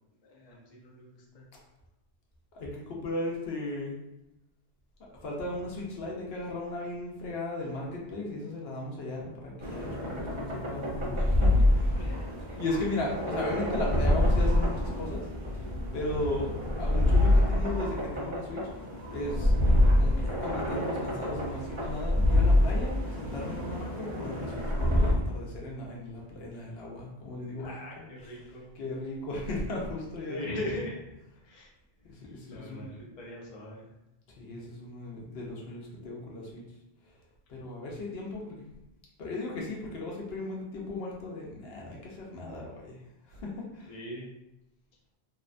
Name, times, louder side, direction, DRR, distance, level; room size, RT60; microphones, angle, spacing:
voice 1, 0.2-1.4 11.9-12.6 27.6-28.7 30.3-31.0 31.4-31.7 32.0-32.1 32.5-33.9 43.9-44.3, left 1 dB, 45° left, -4 dB, 0.6 m, -40 dB
voice 2, 2.5-3.9 5.0-12.0 12.6-15.3 15.5-15.6 15.9-18.7 19.1-19.5 19.9-28.1 28.5-30.4 32.0-32.8 34.3-36.6 37.0-37.1 37.5-38.7 39.2-43.0 43.3-43.9, left 2 dB, 75° left, -2 dB, 0.9 m, -36 dB
sound 1, 9.6-25.1, left 1 dB, 30° right, 0.8 m, -26 dB
2.7 x 2.1 x 2.4 m, 0.89 s
omnidirectional pair, 1.1 m